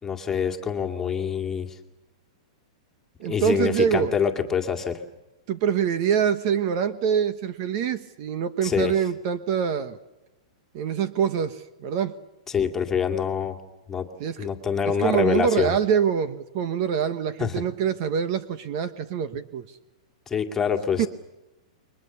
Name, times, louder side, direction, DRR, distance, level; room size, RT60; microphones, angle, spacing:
voice 1, 0.0-1.8 3.3-5.0 8.6-8.9 12.5-13.6 13.9-14.1 14.4-15.7 17.4-17.6 20.3-21.1, left 7 dB, 10° left, 3 dB, 2.3 m, -25 dB
voice 2, 3.2-4.1 5.5-10.0 10.7-12.2 14.2-14.5 14.8-19.6 21.0-21.1, right 7 dB, 40° right, 12 dB, 1.3 m, -25 dB
29.5 x 23.0 x 7.0 m, 0.96 s
hypercardioid pair, 155°, 4 cm